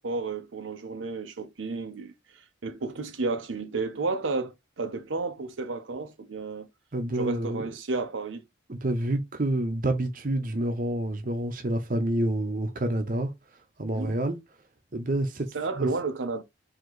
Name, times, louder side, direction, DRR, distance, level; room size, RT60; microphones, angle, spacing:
voice 1, 0.0-6.7 7.1-8.4 13.9-14.2 15.5-16.4, right 3 dB, 85° right, 0.8 m, -32 dB
voice 2, 6.9-7.6 8.7-13.3 13.8-14.4 14.9-15.5 15.8-15.9, right 1 dB, 45° right, 0.8 m, -28 dB
3.9 x 2.9 x 4.6 m
head